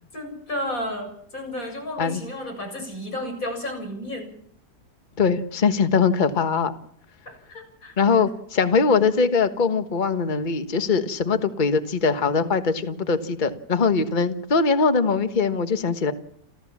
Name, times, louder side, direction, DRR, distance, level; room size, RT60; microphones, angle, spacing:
voice 1, 0.1-4.3 7.5-8.3, left 1 dB, 55° left, 5 dB, 7.9 m, -32 dB
voice 2, 5.2-6.7 8.0-16.1, left 5 dB, 30° left, 9 dB, 1.4 m, -21 dB
29.0 x 14.5 x 7.4 m, 0.65 s
omnidirectional pair, 1.8 m